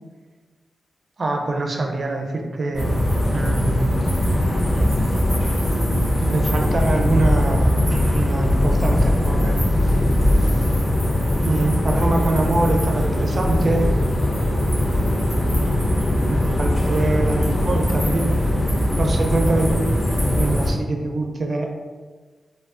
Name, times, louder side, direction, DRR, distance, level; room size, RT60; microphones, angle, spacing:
voice 1, 1.2-2.9 3.3-3.9 6.2-9.6 11.4-13.9 16.3-18.3 19.0-19.9 20.2-21.7, right 2 dB, 55° right, 2 dB, 0.6 m, -24 dB
sound 1, 2.7-20.7, left 1 dB, 30° left, 1.4 m, -20 dB
4.7 x 2.3 x 2.5 m, 1.4 s
cardioid pair, 50°, 0 cm